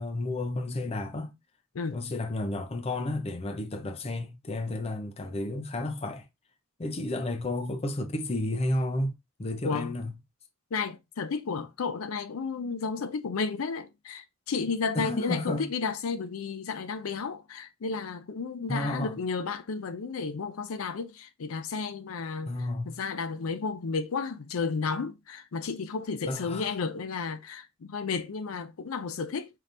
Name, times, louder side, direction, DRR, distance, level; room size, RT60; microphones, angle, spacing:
voice 1, 0.0-1.3 1.9-6.3 6.8-10.1 14.9-15.6 18.7-19.1 22.5-23.0 26.2-26.7, left 1 dB, 30° left, 0.6 m, -32 dB
voice 2, 9.6-9.9 10.7-29.5, left 5 dB, 85° left, 0.5 m, -32 dB
5.2 x 2.9 x 2.5 m
head